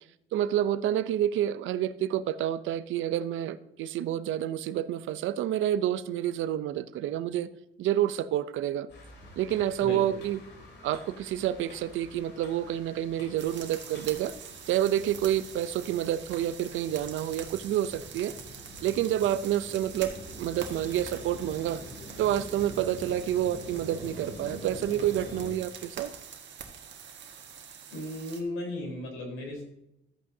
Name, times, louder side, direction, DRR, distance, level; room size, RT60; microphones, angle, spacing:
voice 1, 0.3-7.5 7.8-8.9 9.4-10.4 10.8-14.3 14.7-18.3 18.8-21.8 22.2-26.1, right 11 dB, 80° right, 15 dB, 0.6 m, -28 dB
sound 1, 8.9-25.5, left 1 dB, 60° left, 3.0 m, -46 dB
sound 2, 13.4-28.4, right 7 dB, 65° right, 1.6 m, -45 dB
voice 2, 27.9-29.6, left 1 dB, 90° left, -1 dB, 3.9 m, -35 dB
13.0 x 8.6 x 2.7 m, 0.85 s
cardioid pair, 90°, 20 cm